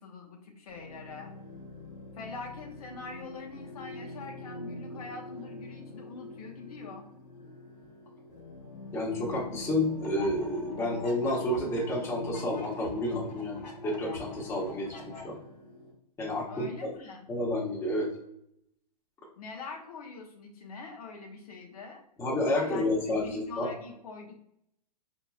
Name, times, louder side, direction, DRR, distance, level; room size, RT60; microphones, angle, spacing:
voice 1, 0.0-1.3 2.1-7.1 16.5-17.2 19.4-22.0 22.5-24.3, left 4 dB, 60° left, 2 dB, 0.8 m, -44 dB
sound 1, 0.7-15.9, left 2 dB, 35° left, 1.3 m, -44 dB
voice 2, 8.9-15.4 16.2-16.9 17.3-18.1 22.2-23.7, left 1 dB, 15° left, -3 dB, 0.9 m, -30 dB
sound 2, 10.0-15.2, left 3 dB, 90° left, 0.9 m, -46 dB
4.3 x 2.8 x 2.3 m, 0.76 s
hypercardioid pair, 130°, 21 cm